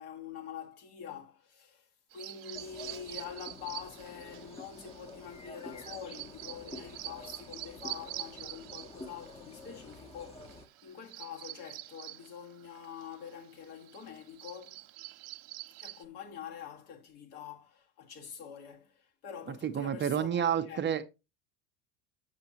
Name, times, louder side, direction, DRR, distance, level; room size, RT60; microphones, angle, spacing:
voice 1, 0.0-14.8 15.8-20.9, left 8 dB, 70° left, 1.9 m, -46 dB
Bird vocalization bird call bird song, 2.1-16.0, right 18 dB, 55° right, 0.8 m, -47 dB
sound 1, 2.5-10.7, left 2 dB, 15° left, 0.7 m, -49 dB
voice 2, 19.6-21.0, right 9 dB, 25° right, 0.6 m, -29 dB
7.3 x 6.9 x 2.8 m
hypercardioid pair, 85°, 44 cm